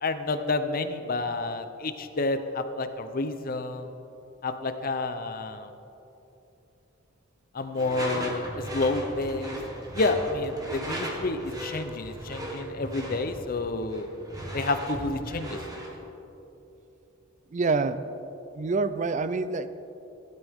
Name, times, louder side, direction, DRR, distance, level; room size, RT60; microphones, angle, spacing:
voice 1, 0.0-3.9 4.4-5.7 7.5-9.6 9.9-14.1 14.5-15.6, left 2 dB, 45° left, 9 dB, 0.7 m, -29 dB
Door / Screech, 7.8-16.0, equal, 20° right, 1.5 m, -37 dB
voice 2, 17.5-18.1 18.5-19.7, right 4 dB, 35° right, 12 dB, 0.4 m, -26 dB
16.0 x 12.0 x 3.6 m, 2.9 s
head